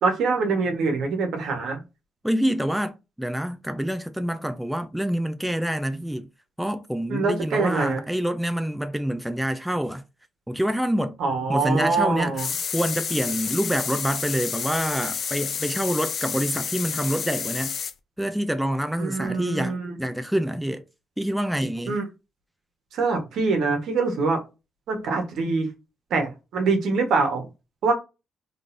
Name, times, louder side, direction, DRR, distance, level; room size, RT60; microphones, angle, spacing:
voice 1, 0.0-1.8 7.1-8.0 11.2-12.5 19.0-20.0 21.9-22.1 22.9-24.4 24.9-25.7 26.1-27.5 27.8-27.9, right 4 dB, 75° right, 1.4 m, -24 dB
voice 2, 2.2-6.3 6.6-10.0 10.5-11.2 11.5-12.5 12.7-17.8 18.2-20.8 21.2-22.0, equal, 5° right, 0.5 m, -26 dB
sound 1, 12.4-17.9, left 6 dB, 55° left, 0.6 m, -30 dB
4.0 x 3.2 x 2.7 m
cardioid pair, 90°, 0 cm